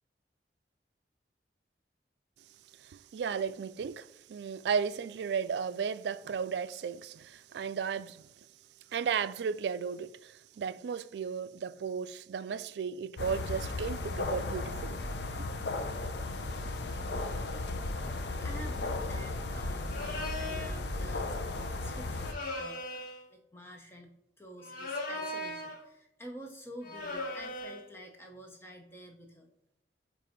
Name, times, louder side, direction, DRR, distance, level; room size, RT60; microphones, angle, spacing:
voice 1, 2.8-8.3 8.9-15.0, right 6 dB, 75° right, 0.3 m, -34 dB
sound 1, 13.2-22.3, left 2 dB, 75° left, 0.6 m, -35 dB
voice 2, 18.0-22.8 23.3-29.5, equal, 15° left, 0.6 m, -49 dB
sound 2, 19.9-20.8 22.2-23.2 24.6-25.8 26.8-27.9, left 2 dB, 50° left, 1.2 m, -38 dB
7.4 x 2.6 x 5.0 m
head